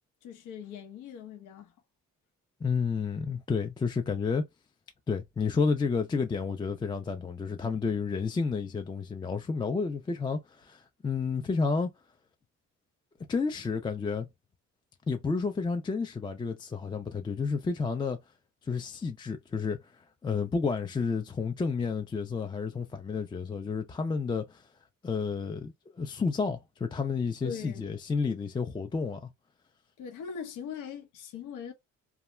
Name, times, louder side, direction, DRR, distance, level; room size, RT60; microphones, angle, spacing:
voice 1, 0.2-1.7 27.4-27.9 30.0-31.7, left 7 dB, 90° left, 0.8 m, -40 dB
voice 2, 2.6-4.4 5.1-11.9 13.3-14.3 15.1-18.2 18.6-19.8 20.2-24.7 25.0-29.3, left 5 dB, 15° left, 0.3 m, -31 dB
2.3 x 2.1 x 3.0 m
cardioid pair, 90°, 30 cm